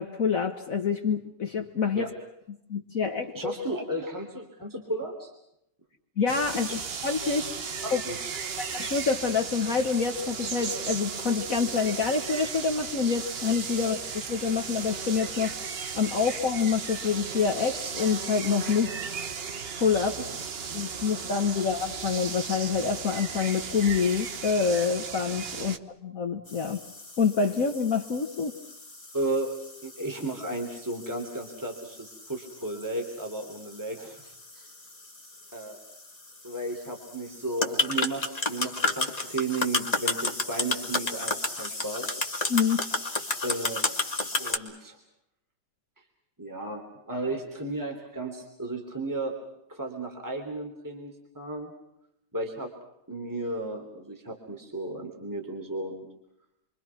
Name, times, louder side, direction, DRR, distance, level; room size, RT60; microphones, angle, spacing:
voice 1, 0.0-2.1 2.7-3.5 6.2-7.5 7.9-8.0 8.6-15.5 15.9-19.0 19.7-20.2 20.7-26.8 27.2-28.5 42.5-42.8, left 5 dB, 50° left, 4 dB, 1.8 m, -27 dB
voice 2, 3.3-5.3 6.7-6.8 7.8-8.2 13.8-13.9 20.2-20.3 25.6-25.7 29.1-29.5 29.8-34.7 35.5-35.8 36.4-42.1 43.4-43.8 44.4-45.0 46.4-49.3 49.7-51.7 52.3-52.7 53.1-56.1, right 2 dB, 10° right, 3 dB, 3.4 m, -34 dB
sound 1, 6.3-25.8, right 6 dB, 40° right, 1.1 m, -35 dB
sound 2, 26.5-44.6, left 2 dB, 20° left, 2.4 m, -33 dB
29.0 x 24.0 x 6.0 m, 0.80 s
omnidirectional pair, 1.9 m